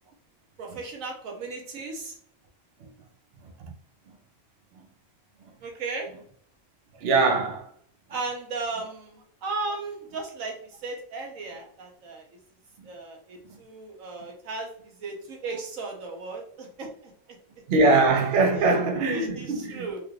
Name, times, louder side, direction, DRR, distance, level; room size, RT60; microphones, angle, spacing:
voice 1, 0.6-2.2 5.6-6.1 8.1-10.6 10.8-12.2 12.8-17.1 19.1-20.0, right 3 dB, 90° right, 1.2 m, -35 dB
voice 2, 7.0-7.7 12.8-12.9 13.4-13.6 17.7-19.9, right 3 dB, 60° right, 0.7 m, -23 dB
3.6 x 2.3 x 3.1 m
omnidirectional pair, 1.4 m